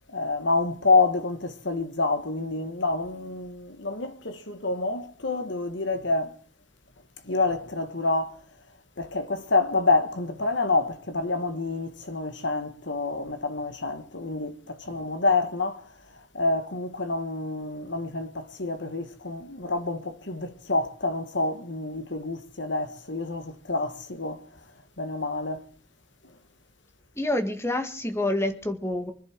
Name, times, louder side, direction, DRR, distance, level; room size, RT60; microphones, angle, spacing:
voice 1, 0.1-6.3 7.3-8.4 9.0-15.9 16.3-24.4 25.0-25.6, left 3 dB, 70° left, 2.0 m, -27 dB
voice 2, 27.2-29.1, left 1 dB, 15° left, 1.8 m, -27 dB
24.5 x 11.0 x 4.7 m
head